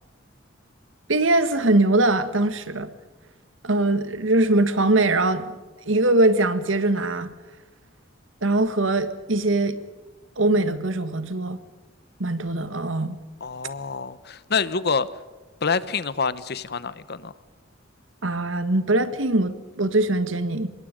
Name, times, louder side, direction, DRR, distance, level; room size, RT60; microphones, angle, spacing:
voice 1, 1.1-2.9 3.6-5.5 5.8-7.3 8.4-9.8 10.4-11.6 12.2-13.2 18.2-20.7, right 2 dB, 90° right, 11 dB, 1.7 m, -22 dB
voice 2, 13.4-15.1 15.6-17.3, left 5 dB, 55° left, 16 dB, 1.1 m, -26 dB
26.5 x 22.0 x 5.3 m, 1.3 s
head